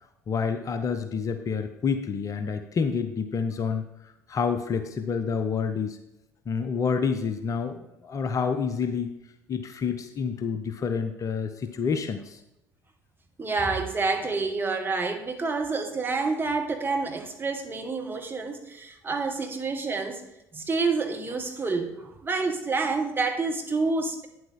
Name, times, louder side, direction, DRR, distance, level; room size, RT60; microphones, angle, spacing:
voice 1, 0.3-3.9 4.3-6.0 6.5-9.1 9.5-12.4, left 6 dB, 35° left, 8 dB, 0.8 m, -28 dB
voice 2, 13.4-20.2 20.5-24.3, right 4 dB, 20° right, 3 dB, 1.6 m, -28 dB
9.3 x 7.8 x 3.7 m, 0.88 s
figure-of-eight pair, 55°, 9 cm